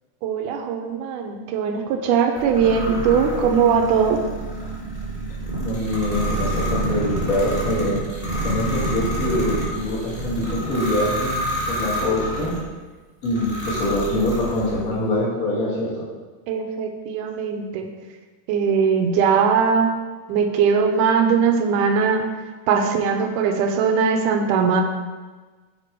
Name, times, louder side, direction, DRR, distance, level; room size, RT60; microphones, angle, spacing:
voice 1, 0.2-4.2 16.5-17.9 18.5-19.9 20.3-22.2 22.7-24.8, right 6 dB, 85° right, 5 dB, 2.2 m, -20 dB
sound 1, 2.4-12.7 13.2-14.9, right 1 dB, 15° left, 1.8 m, -28 dB
voice 2, 5.6-8.0 8.4-11.4 11.6-12.5 13.2-16.0, left 1 dB, 40° left, -6 dB, 1.4 m, -24 dB
6.8 x 4.9 x 4.5 m, 1.3 s
omnidirectional pair, 3.7 m